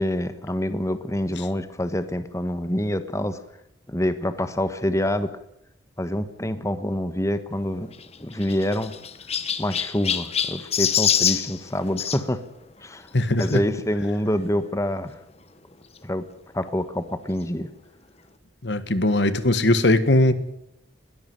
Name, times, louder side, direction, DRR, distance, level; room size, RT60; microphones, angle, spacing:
voice 1, 0.0-3.4 3.9-5.3 6.0-7.9 8.2-8.9 9.6-12.4 12.8-13.1 13.4-15.1 16.0-16.2 16.5-17.7, left 1 dB, 15° left, 1.3 m, -26 dB
Chirp tweet, 7.9-12.2 13.4-13.6 14.3-14.4 14.6-14.7 16.0-16.1, left 8 dB, 35° left, 1.3 m, -26 dB
voice 2, 13.1-13.6 18.6-20.3, left 1 dB, 75° left, 1.6 m, -20 dB
21.5 x 14.0 x 9.3 m
head